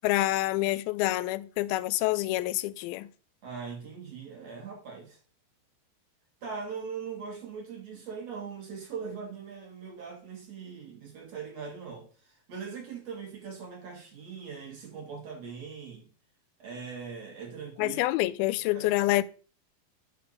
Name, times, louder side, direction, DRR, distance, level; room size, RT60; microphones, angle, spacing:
voice 1, 0.0-3.1 17.8-19.2, left 17 dB, 85° left, 2.4 m, -27 dB
voice 2, 3.4-5.2 6.4-16.1 16.6-18.0 18.7-18.9, right 6 dB, 50° right, 3.4 m, -41 dB
9.4 x 3.6 x 6.8 m
omnidirectional pair, 4.2 m